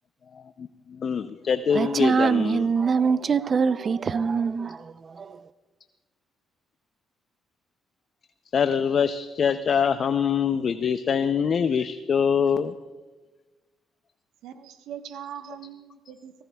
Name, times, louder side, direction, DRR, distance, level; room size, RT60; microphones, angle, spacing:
voice 1, 0.3-2.7 8.5-12.7, left 7 dB, 50° left, 0.5 m, -24 dB
voice 2, 1.7-5.5, right 5 dB, 45° right, 0.5 m, -24 dB
voice 3, 14.4-16.4, right 9 dB, 90° right, 1.1 m, -41 dB
24.5 x 16.0 x 2.3 m
cardioid pair, 90°, 0 cm